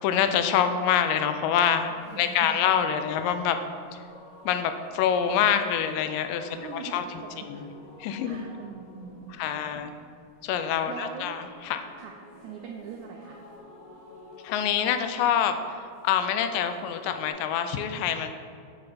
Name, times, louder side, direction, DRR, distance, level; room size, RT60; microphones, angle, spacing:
voice 1, 0.0-3.6 4.5-7.6 8.0-8.5 9.4-9.9 10.4-11.9 14.4-18.3, left 8 dB, 85° left, 8 dB, 2.2 m, -26 dB
sound 1, 1.8-17.3, left 1 dB, 65° left, 1.5 m, -51 dB
voice 2, 2.1-2.7 6.5-7.6 8.2-9.9 10.9-11.4 12.0-12.1 12.4-13.4, right 6 dB, 90° right, 2 dB, 1.7 m, -42 dB
8.2 x 5.2 x 4.2 m, 2.3 s
omnidirectional pair, 3.9 m